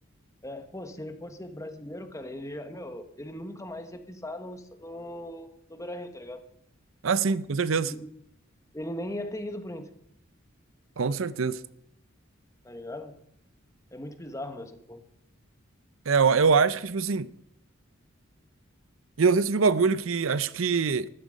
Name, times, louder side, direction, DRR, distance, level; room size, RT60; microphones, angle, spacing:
voice 1, 0.4-6.4 7.8-8.1 8.7-9.9 12.6-13.1 13.9-15.0, left 1 dB, 15° left, 1.3 m, -39 dB
voice 2, 7.0-7.9 11.0-11.6 16.1-17.3 19.2-21.1, right 5 dB, 80° right, 0.6 m, -23 dB
13.5 x 13.5 x 5.2 m
head